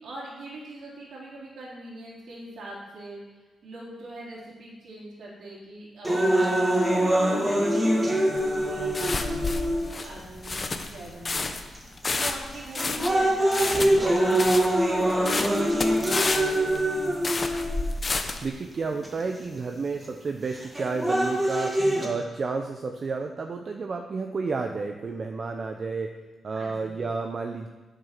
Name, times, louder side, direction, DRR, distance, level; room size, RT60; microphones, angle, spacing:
voice 1, 0.0-11.6 12.2-17.3 26.5-27.0, right 2 dB, 70° right, -5 dB, 3.7 m, -42 dB
sound 1, 6.0-10.1 10.8-10.9 11.7-12.1 12.5-18.1 19.0-19.1 20.5-22.1, right 1 dB, 20° right, 2.2 m, -24 dB
sound 2, 8.4-18.5, left 3 dB, 30° left, 1.0 m, -30 dB
voice 2, 18.4-26.1 26.4-27.7, right 4 dB, 45° right, 4 dB, 0.8 m, -31 dB
8.6 x 7.7 x 6.0 m, 1.3 s
cardioid pair, 95°, 0 cm